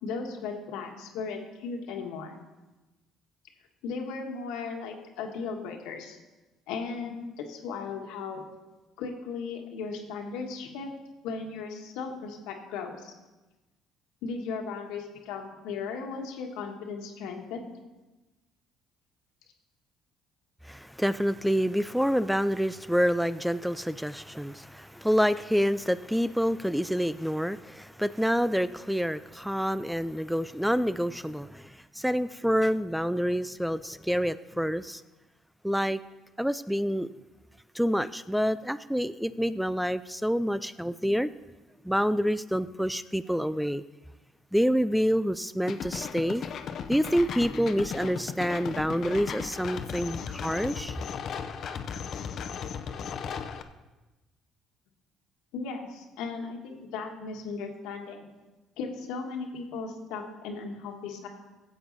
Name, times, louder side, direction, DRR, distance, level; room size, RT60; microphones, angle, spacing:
voice 1, 0.0-2.4 3.8-6.2 6.7-8.4 9.0-10.9 11.2-13.1 14.2-17.6 55.5-58.3 58.8-61.3, left 5 dB, 80° left, 3 dB, 1.5 m, -36 dB
voice 2, 20.6-35.0 35.6-36.0 36.4-37.1 37.7-41.3 41.8-43.8 44.5-46.5 46.9-51.0, equal, ahead, 15 dB, 0.3 m, -27 dB
sound 1, 45.7-53.6, left 7 dB, 60° left, 0.7 m, -36 dB
14.5 x 7.9 x 4.0 m, 1.1 s
supercardioid pair, 75°, 0 cm